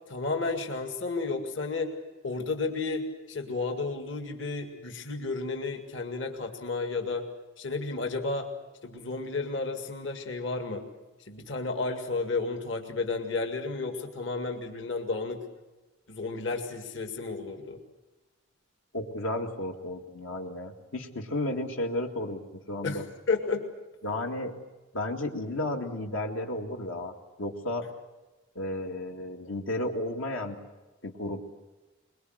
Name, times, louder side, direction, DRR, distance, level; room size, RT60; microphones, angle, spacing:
voice 1, 0.1-1.9 2.2-7.2 7.6-8.5 8.8-10.8 11.3-15.4 16.1-17.8 22.8-23.6, left 3 dB, 65° left, 5 dB, 2.2 m, -32 dB
voice 2, 18.9-22.4 22.7-23.0 24.0-24.5 24.9-27.1 27.4-27.9 28.6-30.6 31.0-31.6, left 1 dB, 80° left, 2 dB, 2.2 m, -33 dB
23.5 x 22.0 x 8.0 m, 1.1 s
head